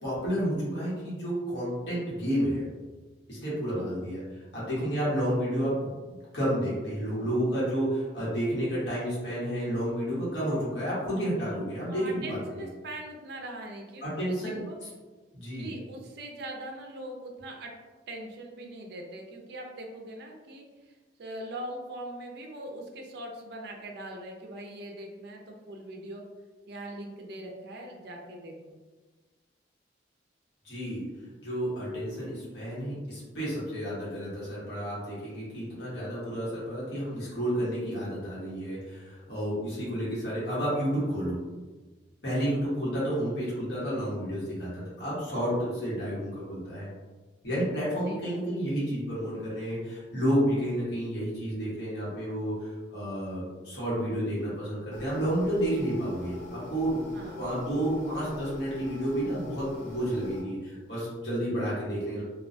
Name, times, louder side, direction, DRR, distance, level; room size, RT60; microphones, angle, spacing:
voice 1, 0.0-2.6 3.3-4.2 4.5-12.6 14.0-14.6 15.3-15.7 30.6-31.0 31.4-41.4 42.2-46.9 47.4-57.1 57.4-62.2, equal, 65° left, -8 dB, 1.1 m, -30 dB
voice 2, 11.9-14.8 15.5-17.7 18.1-20.9 21.2-26.2 26.7-28.8 48.0-48.4 57.1-57.5, right 1 dB, 60° right, 1 dB, 0.4 m, -41 dB
sound 1, 54.9-60.4, left 3 dB, 80° left, 0.6 m, -42 dB
2.3 x 2.2 x 2.5 m, 1.3 s
head